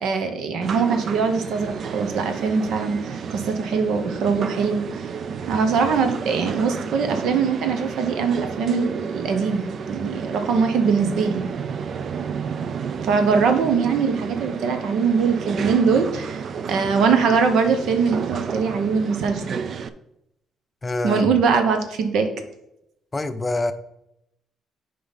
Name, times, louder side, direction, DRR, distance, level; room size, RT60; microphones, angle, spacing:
voice 1, 0.0-5.0 5.5-11.4 13.0-19.6 21.0-22.3, right 5 dB, 80° right, 7 dB, 1.0 m, -22 dB
sound 1, 0.6-19.9, right 6 dB, 55° right, 0.5 m, -31 dB
voice 2, 20.8-21.3 23.1-23.7, left 2 dB, 25° left, 10 dB, 0.7 m, -25 dB
8.0 x 5.1 x 4.1 m, 0.82 s
cardioid pair, 90°, 0 cm